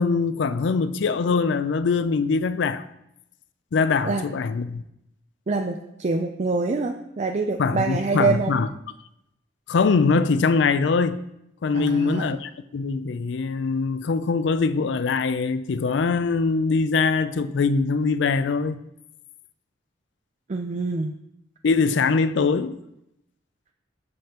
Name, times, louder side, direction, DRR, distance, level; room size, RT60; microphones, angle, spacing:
voice 1, 0.0-2.9 3.7-4.8 7.6-8.7 9.7-11.2 11.6-18.8 21.6-22.8, left 4 dB, 70° left, 0.4 m, -22 dB
voice 2, 5.5-8.6 11.7-12.3 20.5-21.1, right 3 dB, 40° right, 0.5 m, -25 dB
13.0 x 5.3 x 2.9 m
head